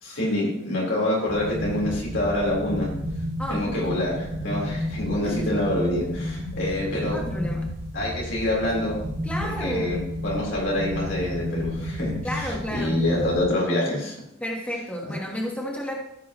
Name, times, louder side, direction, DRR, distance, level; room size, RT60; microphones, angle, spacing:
voice 1, 0.0-2.9 3.5-7.2 7.9-9.0 9.4-14.2 15.1-15.2, left 1 dB, 90° left, -5 dB, 4.0 m, -26 dB
sound 1, 1.3-13.4, equal, 35° right, 2.2 m, -31 dB
voice 2, 3.4-3.9 5.2-5.5 7.1-7.6 9.2-10.0 12.2-13.0 14.4-16.0, equal, 5° left, -1 dB, 1.3 m, -31 dB
14.0 x 6.1 x 3.0 m, 0.80 s
head